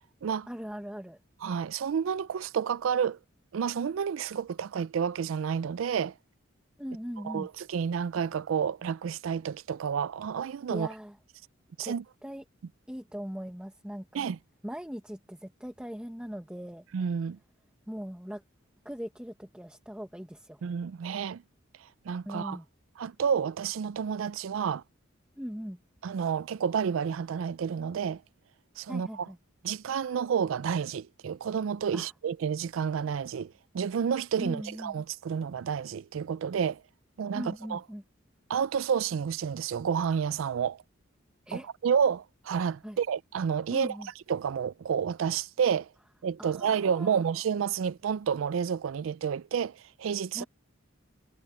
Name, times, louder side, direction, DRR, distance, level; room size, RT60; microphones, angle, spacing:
voice 1, 0.5-1.2 6.8-7.5 10.7-11.2 11.8-11.9 12.2-12.4 12.9-14.3 14.6-16.8 17.9-18.4 18.8-20.6 22.2-22.7 25.4-25.8 28.9-29.4 31.9-32.1 34.4-35.0 37.3-38.0 41.5-41.7 42.8-43.0 43.7-44.1 46.4-47.2 50.3-50.5, equal, 5° right, 1.2 m, -40 dB
voice 2, 1.4-3.2 3.5-6.1 7.2-10.9 11.8-12.0 14.1-14.4 16.9-17.4 20.6-21.4 21.8-22.6 23.0-24.8 26.0-28.2 28.8-29.3 29.6-36.8 37.2-37.8 38.5-40.8 41.5-44.0 44.3-45.9 46.2-50.4, right 7 dB, 80° right, 0.4 m, -30 dB
head